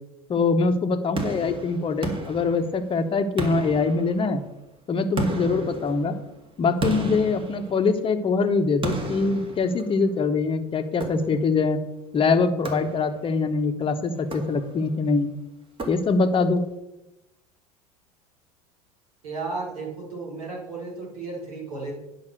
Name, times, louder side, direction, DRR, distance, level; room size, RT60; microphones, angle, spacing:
voice 1, 0.3-4.4 4.9-6.1 6.6-11.8 12.1-15.3 15.9-16.6, left 4 dB, 25° left, 9 dB, 1.1 m, -23 dB
sound 1, 1.2-3.0 3.4-4.5 5.2-8.2 8.8-10.2 11.0-11.6 12.6-13.4 14.2-15.0 15.8-16.5, right 2 dB, 25° right, 2.0 m, -34 dB
voice 2, 19.2-21.9, right 3 dB, 70° right, -3 dB, 4.2 m, -34 dB
9.6 x 5.7 x 6.5 m, 0.95 s
figure-of-eight pair, 75°, 19 cm